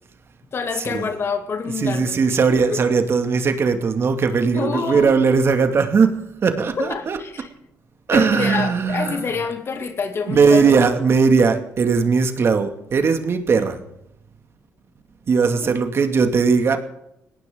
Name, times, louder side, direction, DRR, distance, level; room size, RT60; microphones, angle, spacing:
voice 1, 0.5-2.8 4.5-5.1 6.8-7.5 8.1-10.8 15.6-15.7, left 5 dB, 50° left, 6 dB, 2.5 m, -27 dB
voice 2, 1.8-7.2 8.1-9.2 10.3-13.8 15.3-16.8, right 5 dB, 50° right, 6 dB, 2.3 m, -18 dB
19.0 x 17.5 x 3.9 m, 0.79 s
cardioid pair, 80°, 5 cm